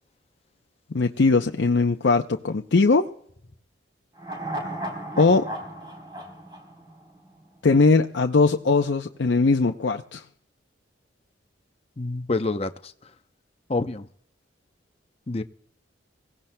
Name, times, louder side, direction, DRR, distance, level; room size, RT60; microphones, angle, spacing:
voice 1, 0.9-3.1 5.2-5.5 7.6-10.2, left 3 dB, 70° left, 0.6 m, -20 dB
sound 1, 4.2-7.6 7.9-8.0, right 1 dB, 25° right, 3.7 m, -35 dB
voice 2, 12.0-12.9 13.7-14.1 15.3-15.4, left 3 dB, 30° left, 0.6 m, -27 dB
24.0 x 16.5 x 2.2 m
head